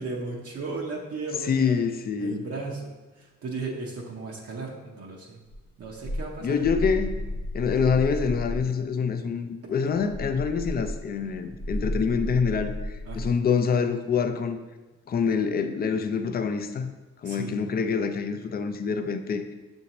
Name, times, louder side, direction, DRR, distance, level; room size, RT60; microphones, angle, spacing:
voice 1, 0.0-1.8 2.2-2.9 3.2-5.4 5.8-6.6 13.1-13.3 17.2-17.5, right 3 dB, 55° right, -2 dB, 0.7 m, -35 dB
voice 2, 1.4-2.4 6.4-7.2 7.5-14.6 15.1-16.9 17.2-19.4, left 6 dB, 35° left, 8 dB, 0.4 m, -26 dB
sound 1, 5.5-8.7 9.9-13.4, equal, 50° left, 1.0 m, -33 dB
6.3 x 2.7 x 2.9 m, 1.2 s
cardioid pair, 90°, 30 cm